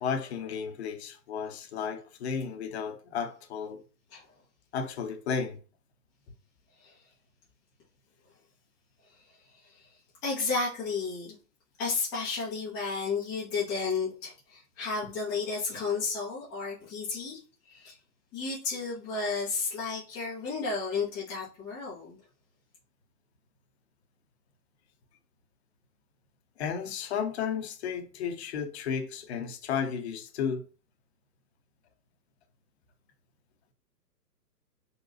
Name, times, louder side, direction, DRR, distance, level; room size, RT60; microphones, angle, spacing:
voice 1, 0.0-3.8 4.7-5.6 26.6-30.6, left 6 dB, 40° left, 0.7 m, -33 dB
voice 2, 10.2-11.3 11.8-17.4 17.7-18.0 18.3-22.2, left 4 dB, 10° left, 0.5 m, -32 dB
3.9 x 2.2 x 2.7 m
hypercardioid pair, 125°, 50 cm